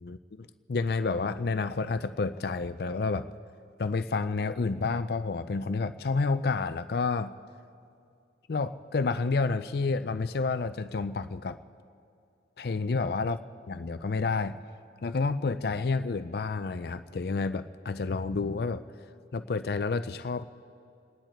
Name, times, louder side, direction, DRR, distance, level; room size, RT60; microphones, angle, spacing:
voice 1, 0.0-3.3 3.8-7.3 8.5-11.6 12.6-13.4 13.7-14.6 15.0-18.8 19.3-20.4, left 4 dB, 60° left, 11 dB, 0.5 m, -29 dB
29.5 x 10.0 x 4.5 m, 2.5 s
head